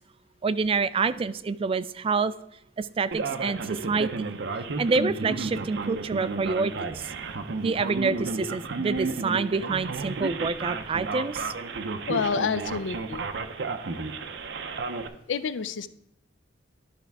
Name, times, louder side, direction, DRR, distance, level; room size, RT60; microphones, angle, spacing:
voice 1, 0.4-2.3 2.8-3.6 3.9-4.3 4.8-7.0 7.6-11.5, right 4 dB, 30° right, 15 dB, 0.3 m, -27 dB
Male speech man speaking, 3.1-15.1, right 3 dB, 65° right, 0.7 m, -32 dB
voice 2, 12.1-13.3 15.3-15.9, left 5 dB, 80° left, 14 dB, 0.5 m, -28 dB
11.5 x 5.8 x 3.5 m, 0.77 s
head